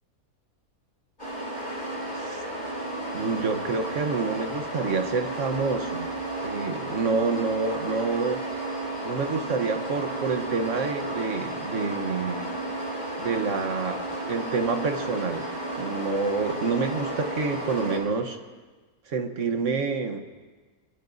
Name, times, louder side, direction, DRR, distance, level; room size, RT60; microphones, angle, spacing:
sound 1, 1.2-18.0, right 1 dB, 30° left, 7.2 m, -33 dB
voice 1, 3.1-6.1 6.4-8.4 9.0-12.5 13.2-15.5 15.8-18.4 19.1-20.2, right 4 dB, 55° right, 6 dB, 1.3 m, -28 dB
22.5 x 20.5 x 2.6 m, 1.3 s
omnidirectional pair, 1.7 m